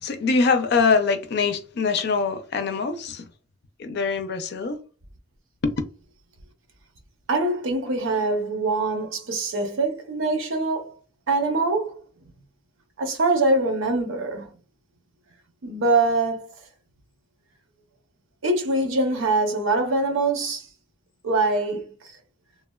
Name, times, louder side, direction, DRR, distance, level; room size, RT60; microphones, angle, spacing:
voice 1, 0.0-3.3 3.8-4.8 5.6-5.7, left 4 dB, 55° left, 0.4 m, -23 dB
voice 2, 7.3-11.0 11.3-11.9 13.0-14.5 15.6-16.5 18.4-20.7 21.2-22.2, right 2 dB, 85° right, 0.7 m, -23 dB
3.2 x 2.1 x 2.2 m
head